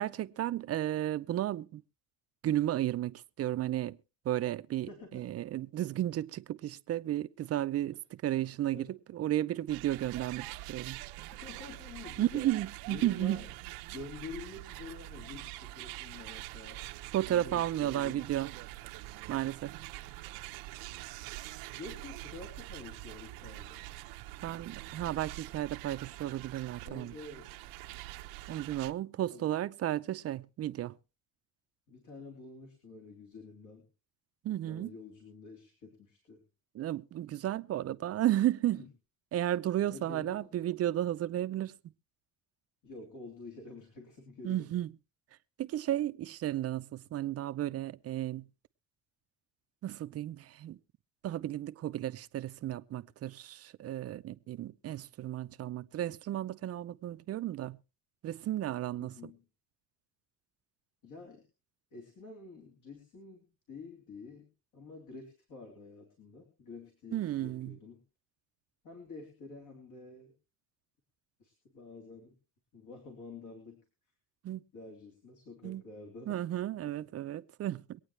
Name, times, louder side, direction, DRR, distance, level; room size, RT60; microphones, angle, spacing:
voice 1, 0.0-1.8 2.4-4.0 4.2-11.0 12.2-13.4 17.1-18.5 19.3-19.7 24.4-27.1 28.5-31.0 34.4-34.9 36.7-38.8 39.3-41.7 44.4-44.9 45.6-48.5 49.8-50.8 51.2-57.8 58.2-59.3 67.1-67.8 74.4-74.6 75.6-75.8 76.3-78.0, right 13 dB, 45° right, 0.6 m, -33 dB
voice 2, 4.9-5.3 8.7-9.0 11.4-12.5 12.9-13.5 13.9-16.8 17.3-18.3 21.8-23.9 26.8-27.5 29.3-29.5 31.9-33.9 34.6-36.4 38.7-38.9 39.9-40.5 42.8-44.7 59.0-59.4 61.0-61.4 61.9-68.0 68.8-70.3 71.4-72.4 72.7-73.8 74.7-76.4, left 3 dB, 60° left, 3.7 m, -48 dB
sound 1, 9.7-28.9, right 18 dB, 90° right, 0.8 m, -45 dB
23.5 x 9.1 x 3.2 m
cardioid pair, 120°, 35 cm